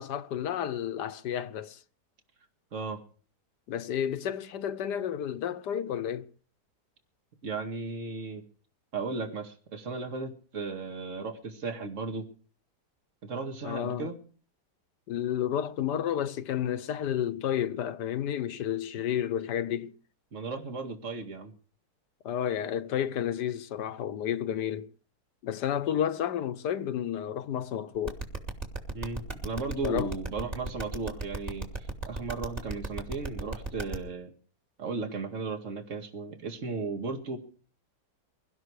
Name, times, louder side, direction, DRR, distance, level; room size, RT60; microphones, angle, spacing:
voice 1, 0.0-1.8 3.7-6.3 13.6-14.1 15.1-19.9 22.2-24.9 25.4-28.2 29.8-30.1, left 9 dB, 70° left, 1.5 m, -31 dB
voice 2, 7.4-8.4 8.9-12.3 13.2-14.2 20.3-21.5 28.9-34.3 34.8-37.4, right 4 dB, 45° right, 2.4 m, -35 dB
sound 1, 28.1-33.9, right 2 dB, 20° right, 2.7 m, -34 dB
23.0 x 12.5 x 4.8 m
omnidirectional pair, 1.9 m